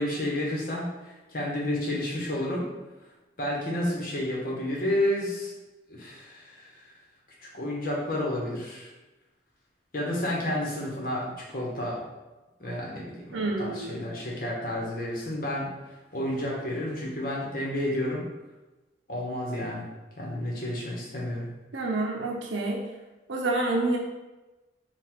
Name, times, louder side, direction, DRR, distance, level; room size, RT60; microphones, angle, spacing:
voice 1, 0.0-2.7 3.4-5.5 5.9-6.9 7.4-8.9 9.9-12.0 12.6-15.7 16.1-18.2 19.1-19.8 20.2-21.5, left 1 dB, 50° left, -3 dB, 1.0 m, -31 dB
voice 2, 13.3-14.0 21.7-22.8 23.3-24.0, right 2 dB, 85° right, 0 dB, 0.6 m, -28 dB
3.8 x 2.4 x 4.5 m, 1.1 s
head